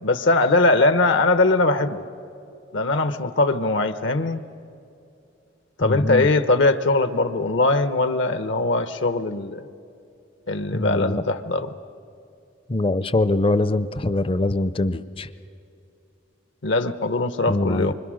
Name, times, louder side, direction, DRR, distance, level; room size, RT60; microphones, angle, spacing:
voice 1, 0.0-2.0 2.7-4.4 5.8-9.7 10.5-11.7 16.6-17.9, left 2 dB, 70° left, 11 dB, 0.9 m, -21 dB
voice 2, 5.8-6.3 10.7-11.1 12.7-15.3 17.5-17.9, left 2 dB, 25° left, 15 dB, 0.5 m, -23 dB
26.0 x 25.0 x 6.3 m, 2.6 s
head